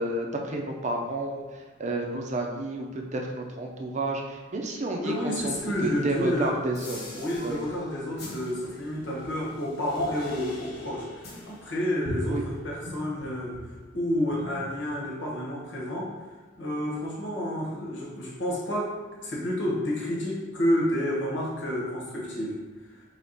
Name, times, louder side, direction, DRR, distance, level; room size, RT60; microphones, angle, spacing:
voice 1, 0.0-5.5 5.8-7.0 7.4-7.6 12.3-12.4, right 2 dB, 40° right, 1 dB, 0.6 m, -30 dB
voice 2, 5.0-6.6 7.1-16.1 16.6-18.9 19.2-22.6, left 1 dB, 80° left, -4 dB, 1.3 m, -30 dB
sound 1, 5.3-14.0 14.3-15.4, left 1 dB, 60° left, 1.0 m, -41 dB
3.6 x 3.5 x 4.0 m, 1.3 s
head